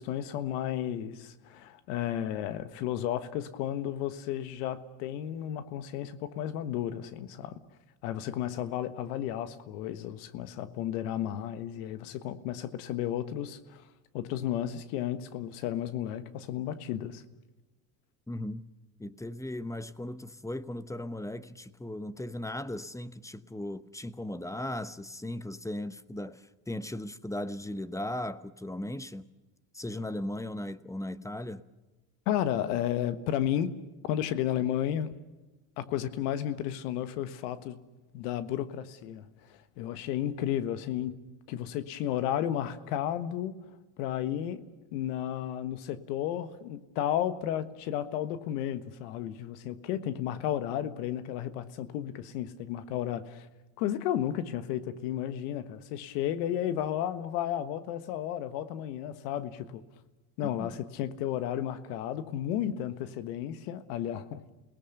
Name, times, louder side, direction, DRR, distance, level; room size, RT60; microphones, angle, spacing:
voice 1, 0.0-7.6 8.0-13.8 14.1-17.2 32.3-33.7 34.0-35.1 35.8-37.8 38.1-41.1 41.5-43.5 44.0-44.6 44.9-53.5 53.8-59.8 60.4-64.4, left 11 dB, 85° left, 1.5 m, -33 dB
voice 2, 18.3-18.6 19.0-29.3 29.7-31.6 60.4-60.7, left 1 dB, 5° left, 1.0 m, -37 dB
28.5 x 18.5 x 6.8 m
supercardioid pair, 90°, 45 cm